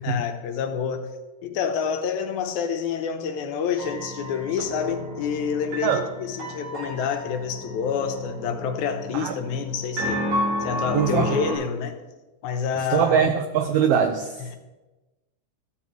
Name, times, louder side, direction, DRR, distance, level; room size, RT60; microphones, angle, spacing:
voice 1, 0.0-1.1 1.4-10.3 10.6-12.0 12.4-13.3 14.4-14.6, left 7 dB, 85° left, 6 dB, 2.2 m, -28 dB
sound 1, 3.8-11.6, equal, 55° right, 3.8 m, -31 dB
voice 2, 10.9-11.3 12.9-14.4, right 8 dB, 90° right, 7 dB, 1.3 m, -22 dB
13.5 x 7.1 x 3.1 m, 1.1 s
omnidirectional pair, 3.3 m